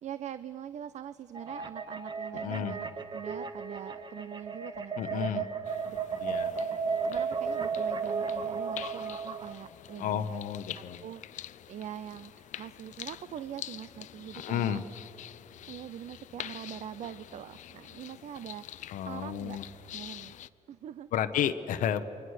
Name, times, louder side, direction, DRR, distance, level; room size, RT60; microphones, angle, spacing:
voice 1, 0.0-2.9 3.1-5.5 5.9-6.7 7.0-10.4 10.7-11.2 11.7-14.8 15.7-19.6 19.9-20.3 20.7-21.1, right 10 dB, 60° right, 15 dB, 0.5 m, -43 dB
sound 1, 1.3-9.5, right 5 dB, 35° right, 1.1 m, -34 dB
voice 2, 2.3-2.8 5.0-5.4 6.2-6.5 10.0-11.0 14.3-14.8 18.9-19.6 21.1-22.0, left 9 dB, 85° left, 8 dB, 0.9 m, -31 dB
sound 2, 5.6-20.5, left 12 dB, 70° left, 0.5 m, -46 dB
28.5 x 23.5 x 6.5 m, 3.0 s
cardioid pair, 120°, 13 cm